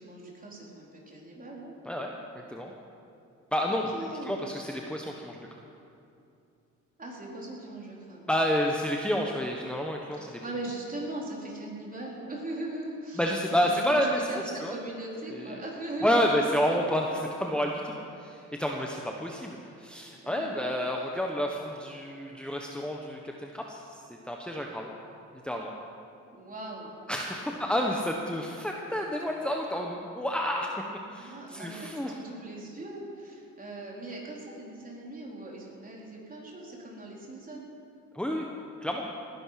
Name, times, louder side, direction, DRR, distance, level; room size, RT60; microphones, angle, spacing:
voice 1, 0.0-1.8 3.7-4.4 7.0-8.6 10.1-13.3 13.7-16.8 20.2-20.7 26.3-27.0 27.5-27.9 31.1-37.6, right 2 dB, 30° right, -3 dB, 4.2 m, -40 dB
voice 2, 3.5-3.9 4.2-5.4 8.3-10.4 13.2-14.7 15.3-15.5 16.0-17.9 18.2-23.8 24.1-24.9 25.4-25.7 27.1-30.7 31.1-32.1 38.1-38.5 38.8-39.1, equal, 5° left, 0 dB, 1.2 m, -29 dB
19.5 x 11.0 x 5.9 m, 2.6 s
cardioid pair, 90°, 30 cm